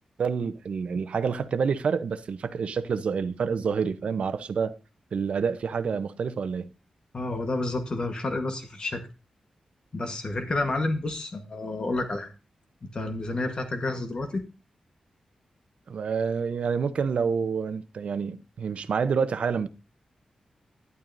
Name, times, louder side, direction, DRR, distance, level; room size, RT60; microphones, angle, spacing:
voice 1, 0.2-4.8 5.1-6.7 15.9-19.7, right 6 dB, 70° right, 0.7 m, -28 dB
voice 2, 7.1-9.0 9.9-12.3 12.9-14.4, left 2 dB, 40° left, 1.2 m, -30 dB
12.0 x 11.0 x 2.6 m
wide cardioid pair, 130°, 2 cm